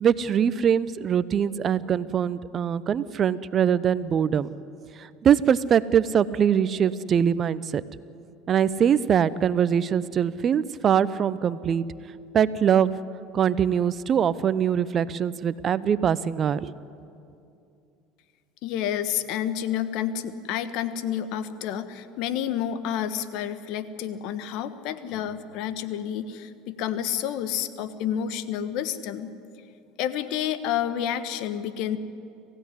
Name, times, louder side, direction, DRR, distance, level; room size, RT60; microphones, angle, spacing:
voice 1, 0.0-4.5 5.0-7.8 8.5-11.8 12.3-12.9 13.3-16.7, right 8 dB, 40° right, 17 dB, 0.8 m, -23 dB
voice 2, 18.6-29.3 30.0-32.0, left 10 dB, 65° left, 12 dB, 1.3 m, -29 dB
26.5 x 16.0 x 9.8 m, 2.6 s
hypercardioid pair, 80°, 0 cm